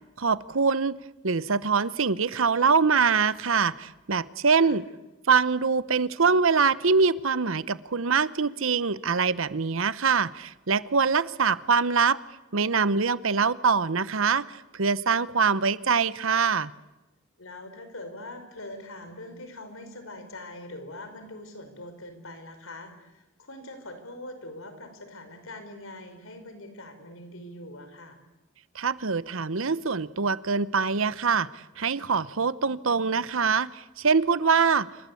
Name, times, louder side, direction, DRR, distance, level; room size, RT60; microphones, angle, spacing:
voice 1, 0.2-1.0 1.2-4.8 5.3-12.2 12.5-16.7 28.7-34.9, right 5 dB, 65° right, 17 dB, 0.9 m, -24 dB
voice 2, 17.4-28.2, left 1 dB, 70° left, 8 dB, 4.9 m, -43 dB
28.5 x 24.5 x 8.5 m, 1.0 s
head